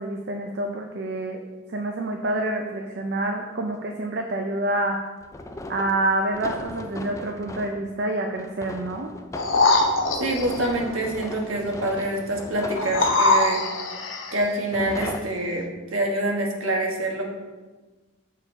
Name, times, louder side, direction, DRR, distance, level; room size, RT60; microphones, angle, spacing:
voice 1, 0.0-1.4 1.7-5.0 5.7-9.1, right 2 dB, 55° right, 3 dB, 0.5 m, -27 dB
sound 1, 5.2-7.8 8.4-13.6 14.4-15.2, left 1 dB, 15° left, 0.3 m, -37 dB
sound 2, 9.3-10.7 12.8-14.4 15.0-15.1, left 3 dB, 65° left, 0.7 m, -22 dB
voice 2, 10.2-13.6 14.3-17.3, right 1 dB, 90° right, 0 dB, 1.3 m, -26 dB
7.1 x 4.6 x 4.6 m, 1.3 s
head